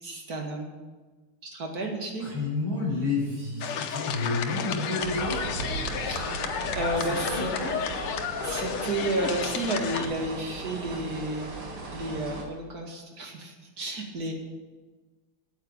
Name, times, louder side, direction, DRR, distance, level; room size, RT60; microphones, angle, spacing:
voice 1, 0.0-0.7 1.5-2.3 6.0-6.4 6.7-7.5 8.4-11.5 11.9-14.3, right 2 dB, 45° right, 1 dB, 2.5 m, -32 dB
voice 2, 2.2-5.4 7.0-7.7, left 3 dB, 65° right, -6 dB, 5.7 m, -30 dB
sound 1, 3.6-10.1, left 7 dB, 90° left, 1.9 m, -32 dB
sound 2, 5.0-12.4, right 3 dB, 85° right, 3.2 m, -37 dB
9.3 x 9.2 x 8.9 m, 1.3 s
omnidirectional pair, 2.4 m